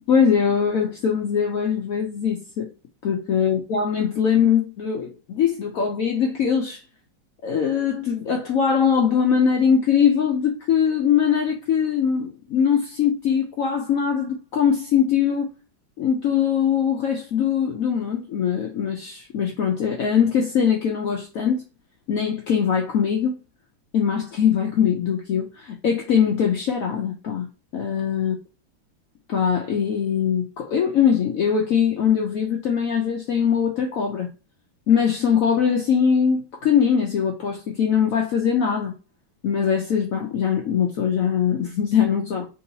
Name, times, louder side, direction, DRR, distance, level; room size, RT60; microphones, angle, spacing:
voice 1, 0.1-2.7 3.0-6.8 7.4-15.5 16.0-21.6 22.1-23.4 23.9-27.5 27.7-28.4 29.3-34.3 34.9-38.9 39.4-42.5, left 7 dB, 80° left, 0.7 m, -21 dB
3.7 x 2.7 x 2.6 m
omnidirectional pair, 2.1 m